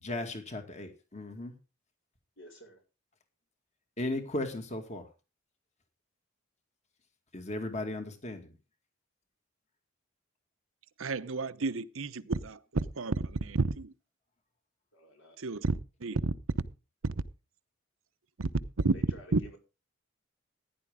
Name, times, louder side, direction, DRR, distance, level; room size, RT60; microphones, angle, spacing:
voice 1, 0.0-1.5 4.0-5.1 7.3-8.5, left 2 dB, 35° left, 2.2 m, -36 dB
voice 2, 2.4-2.8 14.9-15.4 18.9-19.6, right 1 dB, 70° left, 5.3 m, -52 dB
voice 3, 11.0-13.9 15.4-16.3 17.0-17.1 18.4-18.5 18.8-18.9 19.3-19.4, right 3 dB, 80° right, 0.9 m, -31 dB
15.0 x 10.5 x 3.7 m
head